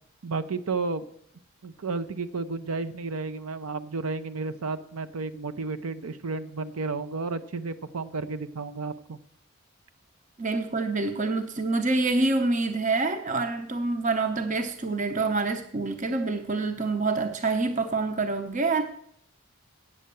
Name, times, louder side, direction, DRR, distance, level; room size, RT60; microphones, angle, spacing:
voice 1, 0.2-1.0 1.6-9.2, right 3 dB, 85° right, 10 dB, 0.7 m, -32 dB
voice 2, 10.4-18.8, right 3 dB, 35° right, 7 dB, 0.8 m, -26 dB
8.6 x 7.6 x 6.9 m, 0.69 s
head